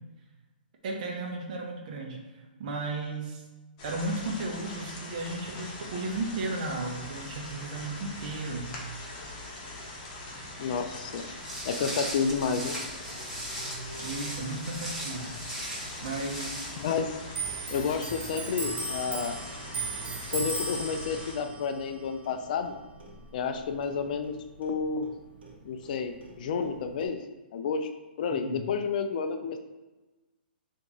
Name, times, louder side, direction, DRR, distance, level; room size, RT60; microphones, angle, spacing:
voice 1, 0.8-3.4 3.8-8.8 14.0-15.4 16.0-16.7 28.4-28.6, right 2 dB, 50° right, 1 dB, 0.8 m, -35 dB
sound 1, 3.8-21.3, left 1 dB, 35° left, 0.9 m, -42 dB
voice 2, 10.6-11.2 11.6-12.7 16.8-17.1 17.7-19.4 20.3-22.7 23.3-24.3 24.6-25.1 25.6-27.2 27.5-27.9 28.2-29.6, left 5 dB, 50° left, 7 dB, 0.3 m, -30 dB
Walk footsteps, 11.4-16.9, equal, ahead, 1.2 m, -38 dB
Clock, 17.3-24.3 24.6-25.9 26.2-27.1, right 2 dB, 80° right, 0.9 m, -37 dB
2.9 x 2.6 x 3.6 m, 1.1 s
hypercardioid pair, 150°, 6 cm